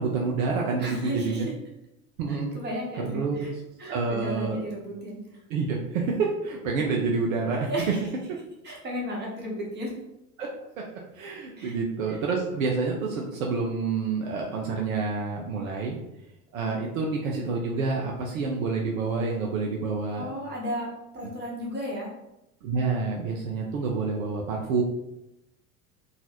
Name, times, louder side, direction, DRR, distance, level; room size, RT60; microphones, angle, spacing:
voice 1, 0.0-1.5 2.2-2.5 3.1-3.5 3.9-4.6 5.5-7.7 10.4-10.5 10.8-10.9 11.1-16.0 16.5-20.3 22.6-24.8, right 4 dB, 60° right, -1 dB, 0.6 m, -28 dB
voice 2, 0.8-1.4 2.3-3.5 3.8-5.2 7.6-8.0 8.6-9.9 11.6-11.8 12.1-12.2 20.2-22.1, equal, 20° right, -3 dB, 1.0 m, -34 dB
2.9 x 2.3 x 2.8 m, 0.88 s
figure-of-eight pair, 75°, 45 cm